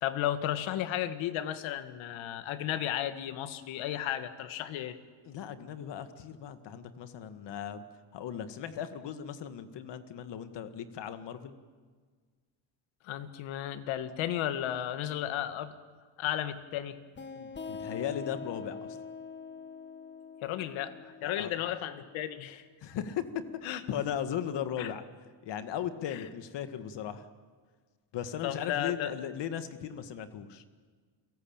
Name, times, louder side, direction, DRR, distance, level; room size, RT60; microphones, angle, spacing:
voice 1, 0.0-5.0 13.0-15.7 16.2-17.0 20.4-20.9 21.2-22.6 23.6-23.8 24.8-24.9 26.1-26.2 28.4-29.1, left 11 dB, 80° left, 11 dB, 1.9 m, -34 dB
voice 2, 5.3-7.8 8.1-11.5 17.3-18.8 21.2-21.5 22.8-23.2 23.6-25.0 25.4-27.3 28.1-30.6, left 9 dB, 60° left, 10 dB, 1.9 m, -37 dB
sound 1, 17.2-22.5, left 5 dB, 25° left, 1.4 m, -44 dB
29.5 x 17.5 x 8.9 m, 1.5 s
cardioid pair, 120°, 47 cm